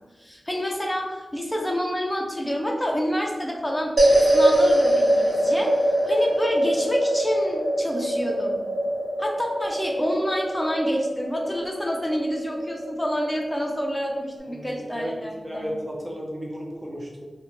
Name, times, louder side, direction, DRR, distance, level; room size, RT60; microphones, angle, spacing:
voice 1, 0.2-3.9 4.3-5.7 6.0-8.6 9.2-15.7, equal, 10° left, -1 dB, 0.4 m, -28 dB
sound 1, 4.0-14.4, right 1 dB, 55° right, 1.0 m, -23 dB
voice 2, 14.5-15.2 15.4-17.2, equal, 30° right, -2 dB, 0.7 m, -34 dB
2.4 x 2.1 x 2.9 m, 1.2 s
cardioid pair, 55°, 0 cm